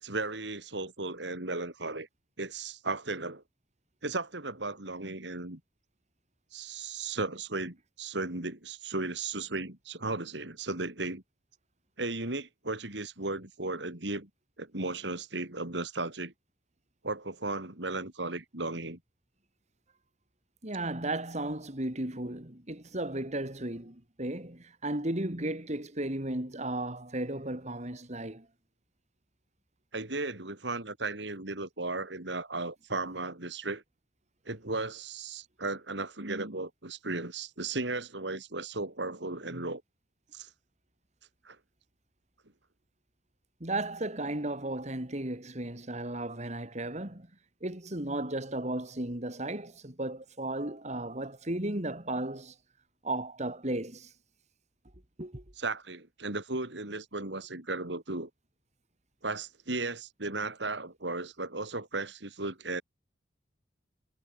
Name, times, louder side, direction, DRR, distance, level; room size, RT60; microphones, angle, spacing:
voice 1, 0.0-2.1 2.4-3.4 4.0-5.6 6.5-11.2 12.0-14.3 14.6-16.3 17.0-19.0 29.9-33.8 34.4-39.8 40.3-40.5 41.4-41.6 55.6-58.3 59.2-62.8, right 3 dB, 70° right, 3.3 m, -35 dB
voice 2, 20.6-28.5 43.6-47.3 47.6-52.6 53.0-54.1 55.2-55.4, right 1 dB, 40° right, 3.6 m, -35 dB
head